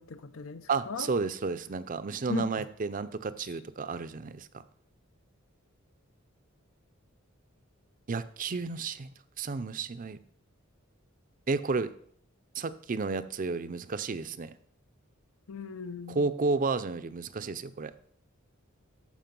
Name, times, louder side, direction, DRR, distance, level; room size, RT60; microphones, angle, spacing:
voice 1, 0.0-1.1 2.3-2.5 15.5-16.3, left 5 dB, 75° left, 11 dB, 0.8 m, -37 dB
voice 2, 0.7-4.5 8.1-9.1 9.4-10.2 11.5-11.9 12.6-14.5 16.1-17.9, right 4 dB, 40° right, 13 dB, 0.5 m, -32 dB
13.5 x 5.1 x 5.3 m, 0.63 s
head